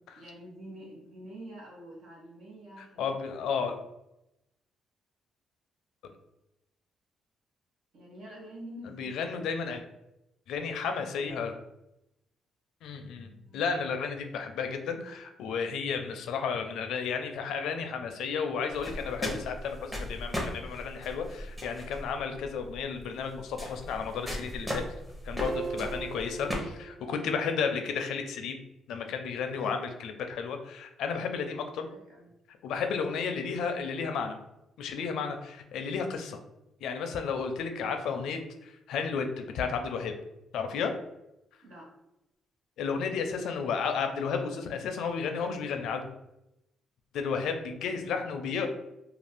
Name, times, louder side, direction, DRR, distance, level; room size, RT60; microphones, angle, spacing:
voice 1, 0.1-3.7 7.9-9.4 13.4-13.6 31.1-31.3 31.9-32.3 41.6-41.9, right 1 dB, 70° right, -3 dB, 1.1 m, -47 dB
voice 2, 3.0-3.8 8.9-9.8 10.5-11.5 12.8-24.8 25.2-28.6 28.9-31.9 32.6-34.4 34.8-36.4 36.8-40.1 40.5-40.9 42.8-46.1 47.1-48.7, left 6 dB, 80° left, 6 dB, 0.4 m, -33 dB
sound 1, 18.7-26.5, left 1 dB, 10° right, 0.8 m, -38 dB
sound 2, 25.4-27.7, right 5 dB, 50° right, 0.3 m, -40 dB
2.5 x 2.3 x 3.4 m, 0.88 s
cardioid pair, 90°, 0 cm